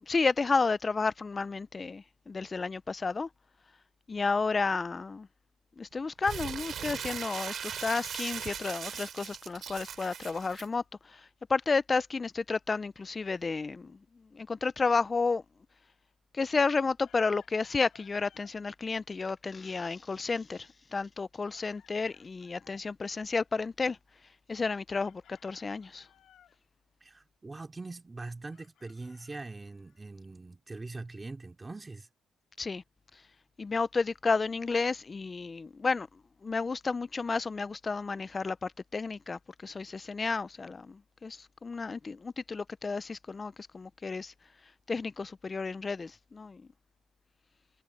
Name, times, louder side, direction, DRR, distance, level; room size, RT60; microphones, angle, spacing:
voice 1, 0.1-3.3 4.1-5.3 5.8-10.8 11.5-14.0 14.3-15.4 16.3-24.0 24.5-26.0 32.6-32.8 33.6-36.1 36.4-44.3 44.9-46.6, left 4 dB, 30° left, 0.5 m, -31 dB
Crumpling crinkling, 6.2-10.7, right 8 dB, 60° right, 0.5 m, -39 dB
Chicken rooster, 17.0-18.6 21.5-22.9 25.0-26.6 28.5-30.1, left 10 dB, 70° left, 3.0 m, -62 dB
voice 2, 27.0-32.1, right 3 dB, 20° right, 2.9 m, -42 dB
cardioid pair, 90°, 0 cm